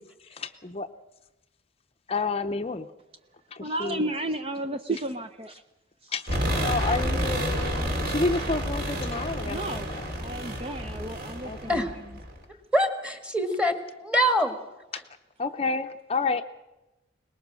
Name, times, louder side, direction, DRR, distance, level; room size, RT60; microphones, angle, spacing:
voice 1, 0.3-0.9 2.1-2.9 3.5-4.1 6.1-10.1 11.4-11.8 14.9-15.0 15.4-16.4, left 3 dB, 30° left, 7 dB, 0.7 m, -30 dB
voice 2, 3.6-5.6 6.0-6.1 9.4-12.0, right 2 dB, 30° right, 9 dB, 0.6 m, -33 dB
sound 1, 6.3-12.4, equal, 50° right, 3.3 m, -30 dB
voice 3, 12.7-14.5, equal, 5° right, 7 dB, 1.6 m, -24 dB
23.0 x 20.0 x 6.3 m, 1.0 s
head